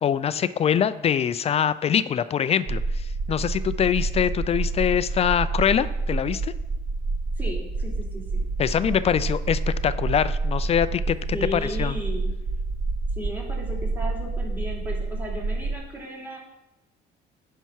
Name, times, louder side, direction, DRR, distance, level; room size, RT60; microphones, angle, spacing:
voice 1, 0.0-6.5 8.6-11.2 11.5-12.0, left 8 dB, 40° left, 15 dB, 0.4 m, -24 dB
sound 1, 2.7-15.7, right 3 dB, 40° right, 1.0 m, -28 dB
voice 2, 7.4-8.5 11.3-12.3 13.2-16.4, equal, 10° right, -3 dB, 2.9 m, -35 dB
10.0 x 5.7 x 4.6 m, 0.94 s
cardioid pair, 110°, 17 cm